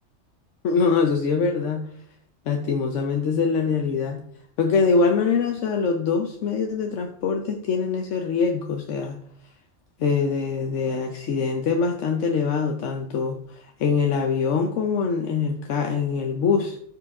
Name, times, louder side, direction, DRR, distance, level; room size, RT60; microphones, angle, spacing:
voice 1, 0.6-1.9 2.5-4.2 4.6-9.2 10.0-16.8, left 5 dB, 85° left, 3 dB, 1.1 m, -23 dB
13.0 x 5.0 x 3.6 m, 0.66 s
omnidirectional pair, 1.2 m